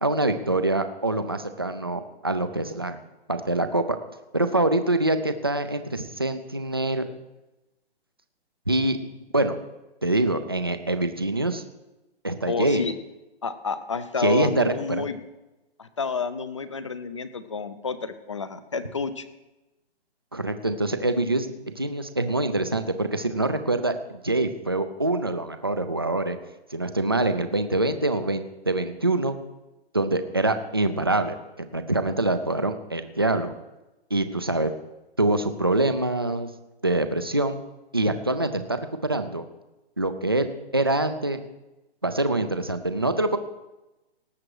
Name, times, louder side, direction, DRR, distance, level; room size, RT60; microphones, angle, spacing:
voice 1, 0.0-3.0 3.3-4.0 4.3-7.1 8.7-9.0 9.3-9.6 10.0-11.6 12.2-12.9 14.2-15.1 20.3-26.4 26.7-29.4 29.9-33.5 34.1-34.7 35.2-36.5 36.8-37.6 37.9-39.4 40.0-40.5 40.7-41.4 42.0-43.4, right 2 dB, 25° right, 8 dB, 0.4 m, -25 dB
voice 2, 12.5-12.9 13.4-15.2 15.8-19.2, left 5 dB, 30° left, 13 dB, 0.6 m, -30 dB
18.5 x 7.6 x 4.7 m, 1.0 s
hypercardioid pair, 175°, 31 cm